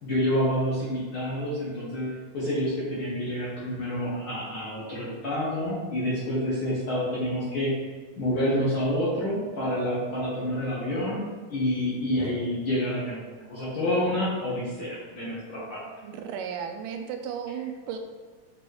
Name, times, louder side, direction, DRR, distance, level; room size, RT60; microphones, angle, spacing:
voice 1, 0.0-7.7 8.2-11.2 11.5-13.2 13.5-15.8, equal, 55° left, -7 dB, 1.6 m, -28 dB
voice 2, 16.0-18.0, right 7 dB, 85° right, 5 dB, 2.2 m, -34 dB
6.8 x 4.6 x 3.1 m, 1.4 s
omnidirectional pair, 3.8 m